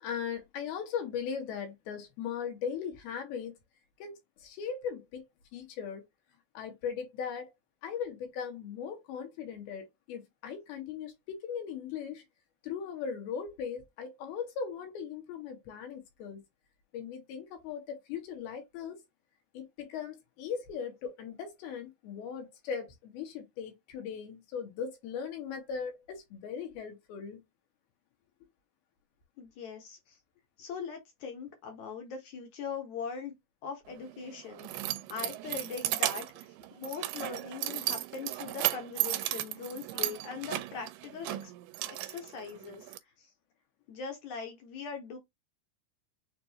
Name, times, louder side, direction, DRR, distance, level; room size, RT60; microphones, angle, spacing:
voice 1, 0.0-3.6 4.0-5.3 5.5-6.0 6.5-7.5 7.8-12.2 12.6-16.4 16.9-19.0 19.5-27.4, left 7 dB, 80° left, 3.1 m, -38 dB
voice 2, 29.4-30.2 30.6-33.3 33.6-41.5 41.9-42.9 43.2-43.3 43.9-45.2, left 6 dB, 65° left, 2.1 m, -41 dB
Keys jangling, 33.9-43.0, right 16 dB, 85° right, 2.6 m, -35 dB
6.7 x 2.6 x 2.8 m
omnidirectional pair, 4.5 m